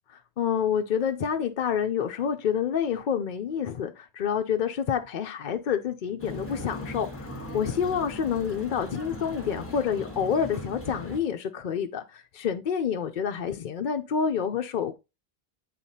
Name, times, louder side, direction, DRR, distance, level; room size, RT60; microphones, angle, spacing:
voice 1, 0.4-15.0, left 7 dB, 55° left, 0.7 m, -28 dB
sound 1, 6.2-11.2, equal, 15° left, 1.2 m, -39 dB
9.0 x 4.1 x 2.7 m
omnidirectional pair, 1.0 m